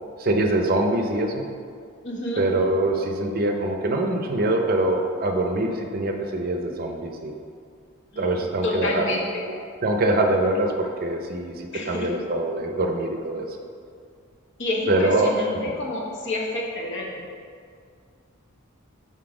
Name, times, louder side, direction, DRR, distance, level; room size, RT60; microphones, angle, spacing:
voice 1, 0.2-1.5 2.4-7.3 8.2-9.0 9.8-13.5 14.9-15.4, right 2 dB, 45° right, 3 dB, 0.6 m, -24 dB
voice 2, 2.0-2.5 8.1-8.3 8.6-9.4 11.7-12.1 14.6-17.3, left 1 dB, 60° left, -2 dB, 1.1 m, -29 dB
6.1 x 4.1 x 4.8 m, 2.2 s
head